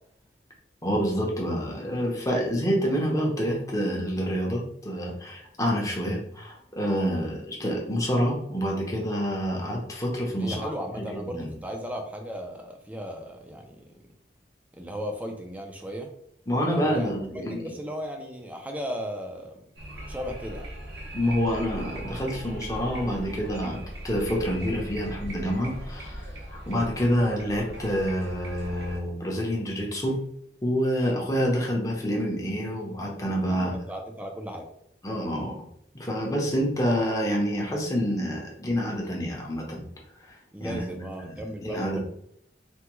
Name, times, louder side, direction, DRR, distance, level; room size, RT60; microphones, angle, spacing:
voice 1, 0.8-10.7 11.0-11.5 16.5-17.8 21.1-26.2 26.5-30.2 30.6-33.7 35.0-35.5 35.9-39.8 40.6-40.8 41.3-42.0, equal, 20° left, -2 dB, 0.7 m, -27 dB
voice 2, 10.4-13.9 14.7-16.1 16.7-19.6 20.1-20.7 33.5-34.7 40.5-42.0, equal, 10° right, 2 dB, 0.4 m, -36 dB
sound 1, 19.8-29.0, right 1 dB, 65° right, 0.7 m, -39 dB
3.4 x 2.2 x 3.0 m, 0.71 s
head